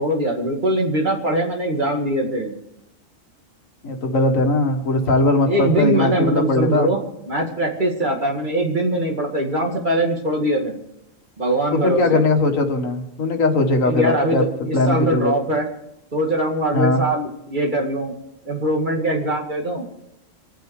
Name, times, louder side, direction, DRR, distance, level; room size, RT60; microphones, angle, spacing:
voice 1, 0.0-2.5 5.5-7.0 7.3-10.8 11.4-12.2 13.8-15.7 16.1-18.1 18.5-19.9, right 1 dB, 35° right, 1 dB, 2.3 m, -22 dB
voice 2, 3.8-6.9 11.7-14.4 14.7-15.4 16.7-17.0, left 2 dB, 75° left, 4 dB, 2.0 m, -19 dB
25.5 x 9.2 x 4.8 m, 0.83 s
omnidirectional pair, 1.4 m